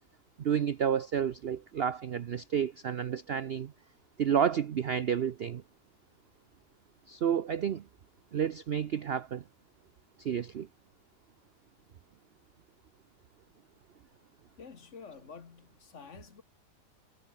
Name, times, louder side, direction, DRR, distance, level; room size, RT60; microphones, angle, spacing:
voice 1, 0.4-3.7 4.2-5.6 7.1-7.8 8.3-9.4 10.2-10.7, right 8 dB, 60° right, 0.6 m, -30 dB
voice 2, 14.6-16.4, left 5 dB, 45° left, 1.7 m, -49 dB
omnidirectional pair, 1.7 m